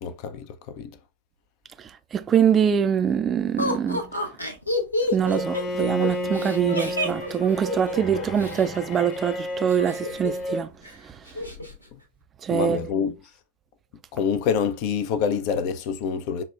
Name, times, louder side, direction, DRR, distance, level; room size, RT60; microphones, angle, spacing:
voice 1, 0.0-1.0 11.9-12.0 12.5-13.1 14.1-16.4, left 6 dB, 45° left, 0.4 m, -26 dB
voice 2, 2.1-4.1 5.1-10.7 12.4-12.8, right 8 dB, 25° right, 0.3 m, -23 dB
Laughter, 3.6-8.6 9.7-10.5 10.8-10.9 11.3-11.7, left 1 dB, 85° left, 0.7 m, -29 dB
Bowed string instrument, 5.2-10.7, left 2 dB, 25° left, 0.8 m, -32 dB
5.8 x 2.1 x 2.3 m
figure-of-eight pair, 90°, 0 cm